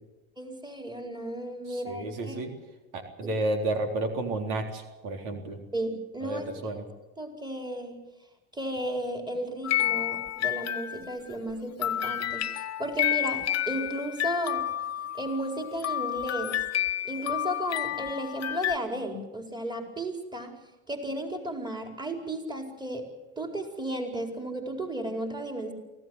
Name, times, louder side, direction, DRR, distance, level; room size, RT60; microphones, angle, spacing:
voice 1, 0.4-2.4 5.7-6.8 7.2-8.0 8.5-14.6 15.1-16.6 17.0-20.6 20.9-23.1 23.4-25.7, right 1 dB, 10° right, 3 dB, 4.6 m, -34 dB
voice 2, 1.7-2.5 2.9-5.6 6.2-6.8, right 2 dB, 80° right, 4 dB, 3.8 m, -31 dB
sound 1, 9.6-11.3 11.8-18.8, left 12 dB, 40° left, 1.2 m, -30 dB
24.5 x 16.0 x 8.0 m, 1.0 s
supercardioid pair, 95°, 40 cm